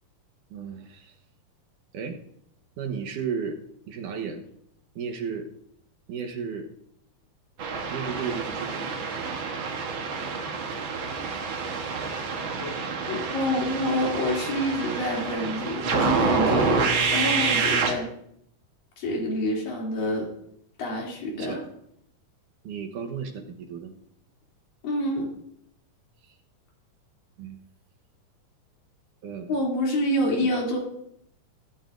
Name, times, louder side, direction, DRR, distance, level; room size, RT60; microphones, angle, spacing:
voice 1, 0.5-1.2 1.9-2.2 2.8-3.6 3.9-4.4 5.0-5.5 6.1-6.7 7.9-8.9 21.3-21.6 22.6-23.9 26.2-26.3 27.4-27.6 29.2-29.5 30.2-30.5, right 6 dB, 75° right, 3 dB, 2.6 m, -34 dB
sound 1, 7.6-17.9, right 5 dB, 55° right, 1.5 m, -27 dB
voice 2, 13.1-18.1 19.0-20.3 20.8-21.6 24.8-25.3 29.5-30.8, left 1 dB, 90° left, -2 dB, 4.7 m, -27 dB
20.0 x 12.5 x 2.6 m, 0.72 s
omnidirectional pair, 3.8 m